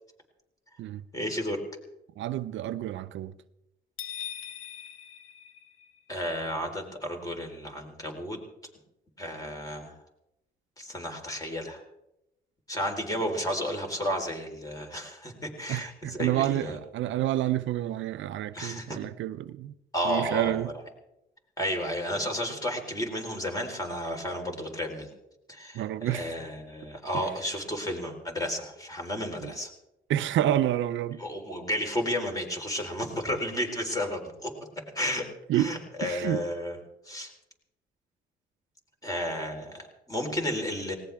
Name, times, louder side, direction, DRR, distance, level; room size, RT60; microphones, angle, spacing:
voice 1, 1.1-1.6 6.1-8.4 9.2-9.9 10.8-11.8 12.7-16.8 18.5-19.0 19.9-20.7 21.6-25.1 25.5-29.7 31.2-35.3 35.5-36.8 37.0-37.3 39.0-41.0, equal, 15° left, 4.1 m, -32 dB
voice 2, 2.2-3.3 15.7-19.7 20.0-20.7 25.7-26.3 29.4-29.5 30.1-31.2 35.5-35.7 36.0-36.4, right 12 dB, 75° right, 0.6 m, -29 dB
sound 1, 4.0-6.2, left 10 dB, 80° left, 1.3 m, -41 dB
19.0 x 18.0 x 3.5 m
cardioid pair, 90°, 20 cm